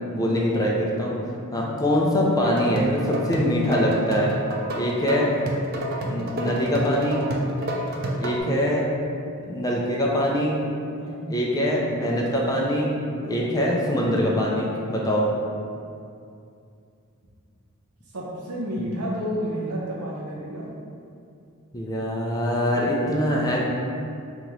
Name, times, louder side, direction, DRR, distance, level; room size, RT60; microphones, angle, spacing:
voice 1, 0.1-1.1 1.5-4.3 4.8-5.3 6.1-7.2 8.2-8.9 9.4-10.6 11.3-12.9 13.2-15.2 21.7-23.7, equal, 15° left, -3 dB, 0.4 m, -23 dB
voice 2, 1.5-1.8 7.5-7.8 10.9-11.3 13.2-13.5 18.1-20.6, equal, 85° right, -4 dB, 0.8 m, -32 dB
sound 1, 2.4-8.4, right 1 dB, 45° right, 0.4 m, -30 dB
3.6 x 2.9 x 3.0 m, 2.5 s
head